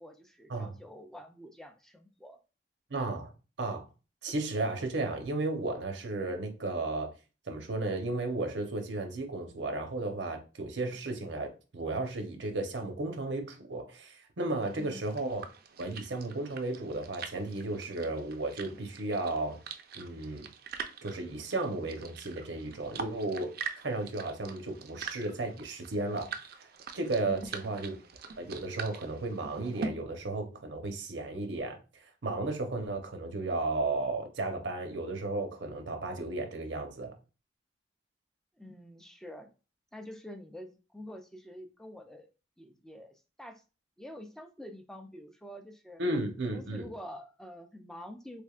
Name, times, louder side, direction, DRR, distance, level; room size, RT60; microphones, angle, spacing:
voice 1, 0.0-2.4 14.7-15.1 27.2-27.7 38.6-39.5 39.9-42.3 42.6-43.6 44.0-46.0 46.5-48.4, left 1 dB, 5° left, 0.4 m, -47 dB
voice 2, 2.9-3.3 3.6-3.9 4.2-7.1 7.5-15.4 15.8-19.6 19.9-20.5 21.0-23.5 23.8-26.3 26.6-26.7 26.9-28.0 28.4-31.8 32.2-37.1 46.0-46.9, right 2 dB, 90° right, 0.8 m, -34 dB
sound 1, 14.6-29.9, right 5 dB, 60° right, 0.4 m, -44 dB
3.5 x 3.3 x 2.4 m
head